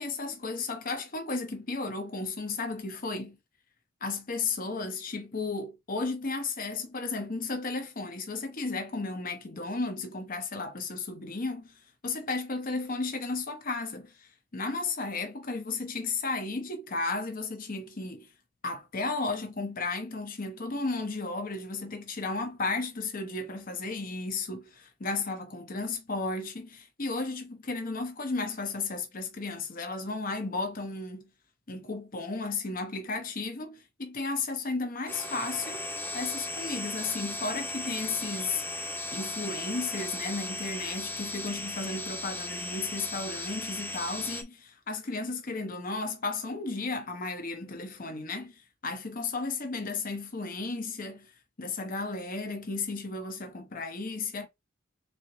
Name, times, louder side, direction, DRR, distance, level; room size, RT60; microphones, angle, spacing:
voice 1, 0.0-3.4 4.0-11.7 12.0-18.3 18.6-31.3 31.7-35.9 36.1-38.6 39.1-51.3 51.6-54.5, left 3 dB, 45° left, 0.9 m, -34 dB
sound 1, 35.1-44.4, left 2 dB, 10° left, 0.6 m, -36 dB
4.1 x 2.9 x 3.1 m
head